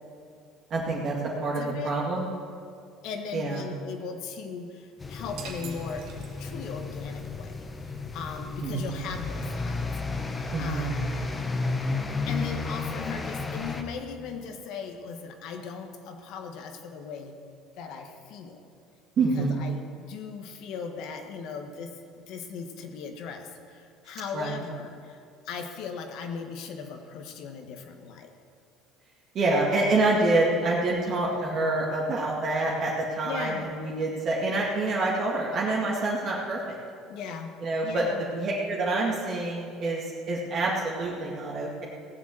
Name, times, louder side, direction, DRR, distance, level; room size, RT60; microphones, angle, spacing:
voice 1, 0.7-2.3 3.3-3.6 8.6-8.9 10.5-10.9 19.2-19.5 24.3-24.5 29.3-36.8 37.6-41.8, right 2 dB, 45° right, -4 dB, 2.2 m, -27 dB
voice 2, 1.5-1.9 3.0-6.1 6.4-7.5 7.8-9.9 10.6-11.2 12.3-17.3 17.8-18.6 19.3-28.3 30.9-31.1 33.2-33.7 37.1-37.5 37.8-38.3, left 6 dB, 65° left, 4 dB, 1.6 m, -38 dB
sound 1, 5.0-13.8, left 3 dB, 20° left, 1.1 m, -33 dB
sound 2, 5.4-6.8, right 7 dB, 70° right, 1.8 m, -44 dB
17.5 x 7.3 x 7.9 m, 2.4 s
cardioid pair, 120°, 0 cm